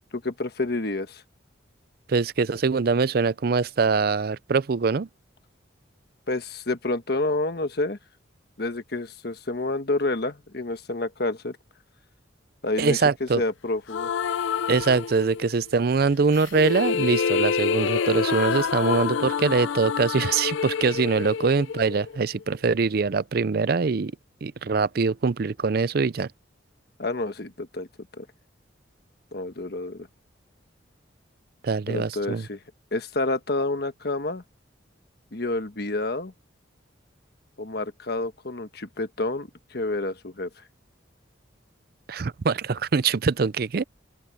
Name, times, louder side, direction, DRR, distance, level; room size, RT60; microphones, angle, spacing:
voice 1, 0.1-1.2 6.3-8.0 8.6-11.6 12.6-14.1 27.0-27.9 28.2-28.3 29.3-30.1 31.9-32.6 32.9-34.4 35.3-36.3 37.6-40.5, left 2 dB, 55° left, 1.3 m, -29 dB
voice 2, 2.1-5.1 12.8-13.4 14.7-24.1 24.4-26.3 31.6-32.5 42.1-43.8, right 4 dB, 55° right, 0.5 m, -23 dB
sound 1, 13.9-15.6 16.3-22.4, left 6 dB, 80° left, 0.4 m, -27 dB
open air
head